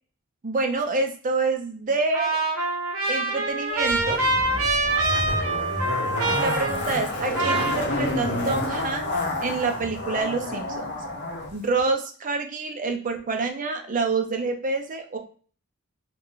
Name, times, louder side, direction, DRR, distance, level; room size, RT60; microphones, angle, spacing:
voice 1, 0.4-2.4 3.1-4.2 6.3-9.1 9.4-11.0 11.5-15.2, right 3 dB, 40° right, 4 dB, 0.6 m, -27 dB
Trumpet, 2.1-7.1 7.3-8.4, right 2 dB, 70° right, 0.9 m, -25 dB
Zipper (clothing), 3.9-11.5 11.8-11.9, left 1 dB, 55° left, 0.8 m, -29 dB
2.5 x 2.4 x 3.7 m, 0.42 s
head